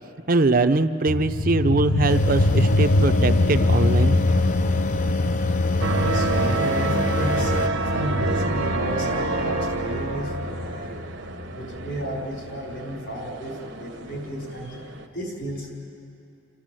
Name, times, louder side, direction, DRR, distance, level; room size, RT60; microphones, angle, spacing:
voice 1, 0.3-4.1, right 3 dB, 45° right, 10 dB, 0.6 m, -22 dB
sound 1, 1.1-12.2, left 2 dB, 80° left, 0.8 m, -24 dB
sound 2, 2.1-7.7, left 3 dB, 40° left, 0.5 m, -32 dB
sound 3, 5.8-15.0, right 3 dB, 70° right, 1.0 m, -27 dB
voice 2, 5.9-7.5 7.8-10.9 11.5-14.8 15.1-15.7, equal, 65° left, -2 dB, 5.2 m, -33 dB
30.0 x 12.5 x 7.7 m, 2.7 s
head